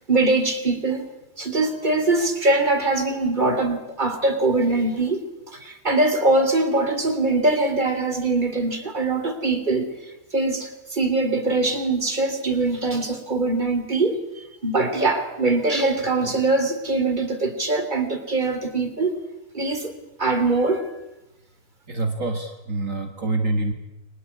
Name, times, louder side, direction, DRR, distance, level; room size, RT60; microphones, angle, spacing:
voice 1, 0.1-1.1 1.4-5.2 5.5-9.9 10.3-19.1 19.5-19.9 20.2-20.9, right 2 dB, 30° right, 3.4 m, -22 dB
voice 2, 21.9-23.7, right 2 dB, 55° right, 2.5 m, -26 dB
30.0 x 22.5 x 8.6 m
omnidirectional pair, 1.6 m